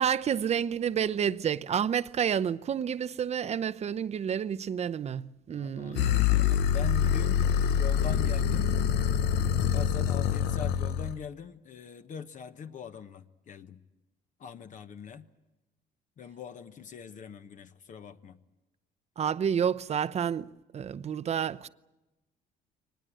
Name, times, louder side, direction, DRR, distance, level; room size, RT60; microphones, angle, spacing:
voice 1, 0.0-6.5 19.2-20.5 20.7-21.7, right 8 dB, 40° right, 0.7 m, -30 dB
voice 2, 5.5-8.8 9.7-13.8 14.4-15.3 16.2-18.4, left 7 dB, 50° left, 1.1 m, -42 dB
sound 1, 6.0-11.2, left 9 dB, 80° left, 0.8 m, -26 dB
23.5 x 19.5 x 9.1 m
cardioid pair, 110°, 17 cm